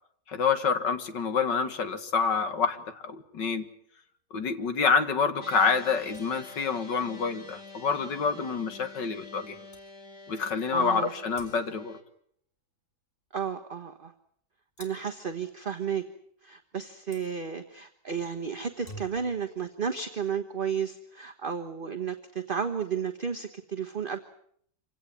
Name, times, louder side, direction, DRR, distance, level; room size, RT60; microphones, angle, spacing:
voice 1, 0.3-3.7 4.3-9.6 10.3-12.0, left 5 dB, 85° left, 10 dB, 2.5 m, -27 dB
sound 1, 5.4-12.0, left 3 dB, 45° left, 3.1 m, -47 dB
sound 2, 6.1-6.6 9.3-9.4 9.7-9.9 11.3-11.9 14.8-15.2 17.1-17.3 18.6-19.4, right 1 dB, 30° left, 4.0 m, -49 dB
voice 2, 10.7-11.1 13.3-14.1 14.8-16.1 16.4-24.2, right 7 dB, 35° right, 6 dB, 1.3 m, -33 dB
26.5 x 17.5 x 9.8 m, 0.66 s
omnidirectional pair, 1.9 m